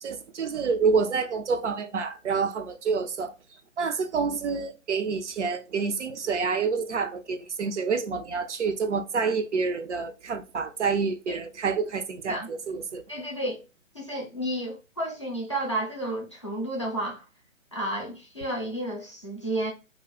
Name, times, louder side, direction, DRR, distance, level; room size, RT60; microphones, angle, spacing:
voice 1, 0.0-3.3 3.8-13.0, right 5 dB, 60° right, 0.6 m, -28 dB
voice 2, 13.1-13.6 13.9-17.3 17.7-19.7, right 1 dB, 25° left, 0.4 m, -31 dB
2.5 x 2.3 x 3.5 m
figure-of-eight pair, 145°, 39 cm